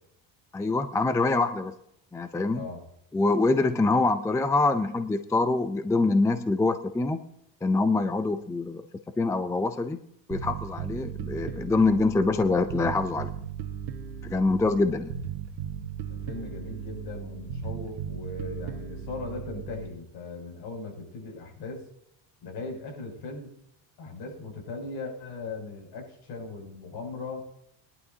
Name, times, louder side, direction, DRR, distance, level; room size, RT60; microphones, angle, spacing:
voice 1, 0.5-1.8 2.1-2.7 3.1-7.2 7.6-8.8 9.2-10.0 10.3-13.3 14.2-15.2, left 3 dB, 5° left, 9 dB, 0.4 m, -25 dB
voice 2, 2.5-2.8 16.0-21.8 22.4-23.5 24.0-27.4, left 3 dB, 60° left, 1 dB, 6.8 m, -38 dB
Bass guitar, 10.3-19.9, right 8 dB, 60° right, 1.5 m, -37 dB
22.0 x 11.0 x 2.8 m, 0.74 s
cardioid pair, 145°, 44 cm